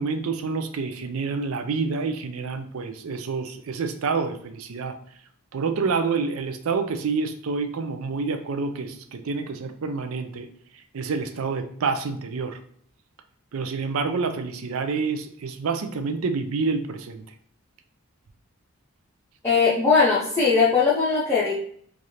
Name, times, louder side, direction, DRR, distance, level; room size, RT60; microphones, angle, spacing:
voice 1, 0.0-5.0 5.5-10.5 10.7-12.6 13.5-17.2, right 4 dB, 75° right, 7 dB, 0.5 m, -28 dB
voice 2, 19.4-21.5, left 5 dB, 15° left, -7 dB, 0.6 m, -20 dB
3.3 x 2.4 x 4.1 m, 0.64 s
head